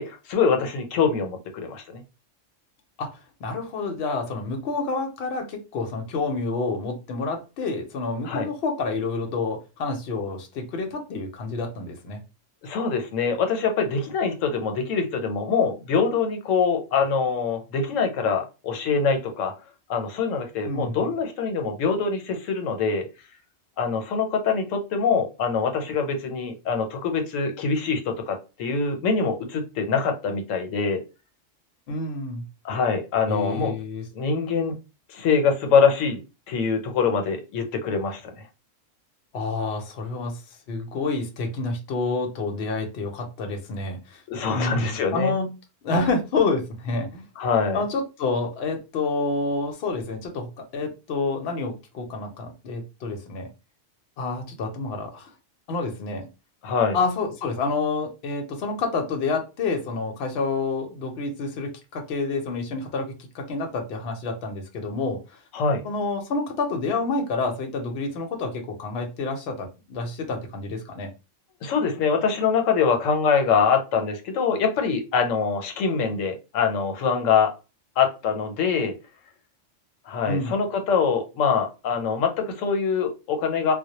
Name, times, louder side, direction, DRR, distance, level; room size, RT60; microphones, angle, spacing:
voice 1, 0.0-2.0 8.2-8.5 12.6-19.5 19.9-23.1 23.8-31.0 32.6-33.7 34.1-34.8 35.1-36.2 36.5-38.5 44.3-45.3 47.4-47.8 56.6-57.0 65.5-65.8 71.6-77.5 78.0-78.9 80.1-83.7, left 5 dB, 90° left, 5 dB, 1.0 m, -24 dB
voice 2, 3.0-12.2 20.7-21.0 31.9-32.4 33.3-34.1 39.3-40.4 40.7-44.2 44.5-45.5 45.8-47.2 47.7-53.5 54.2-55.3 55.7-56.3 56.9-65.4 65.8-71.1 80.3-80.6, left 3 dB, 65° left, 4 dB, 0.8 m, -28 dB
2.1 x 2.1 x 2.8 m, 0.28 s
omnidirectional pair, 1.3 m